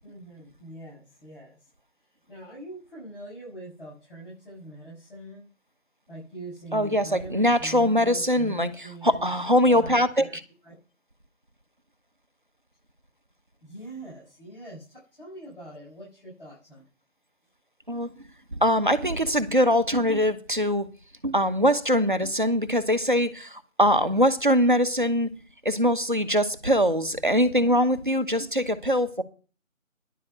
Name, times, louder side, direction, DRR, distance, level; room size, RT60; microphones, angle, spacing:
voice 1, 0.0-1.6 2.3-5.5 6.1-10.4 10.6-10.8 13.6-16.8, right 1 dB, 45° left, 7.2 m, -43 dB
voice 2, 6.7-8.7 9.0-10.3 17.9-18.1 18.6-20.8 21.2-25.3 25.6-29.2, equal, 40° right, 1.0 m, -22 dB
11.0 x 10.0 x 6.1 m
figure-of-eight pair, 175°, 40 cm